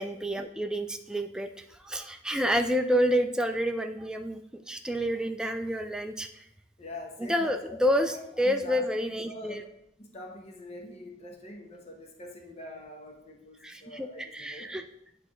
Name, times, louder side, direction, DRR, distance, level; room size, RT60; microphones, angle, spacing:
voice 1, 0.0-6.5 7.2-9.6 13.6-14.8, equal, 5° right, 5 dB, 0.3 m, -29 dB
voice 2, 6.8-9.6 10.0-14.8, left 1 dB, 35° left, 2 dB, 0.9 m, -44 dB
9.7 x 3.3 x 3.1 m, 0.78 s
head